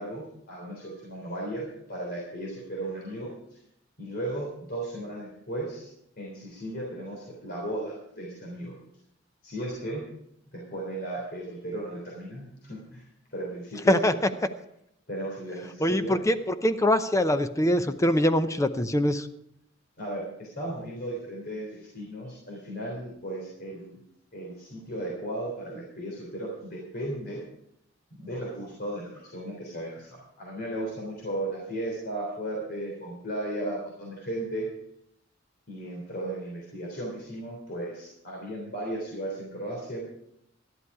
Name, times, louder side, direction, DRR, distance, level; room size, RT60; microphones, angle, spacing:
voice 1, 0.0-3.3 4.0-5.9 6.2-8.7 9.4-10.0 10.5-13.0 13.3-14.2 15.1-16.1 20.0-23.9 24.3-27.4 28.2-34.7 35.7-40.0, right 1 dB, 55° left, -3 dB, 3.4 m, -35 dB
voice 2, 15.8-19.3, left 1 dB, 15° left, 10 dB, 0.7 m, -23 dB
12.5 x 11.5 x 4.8 m, 0.76 s
head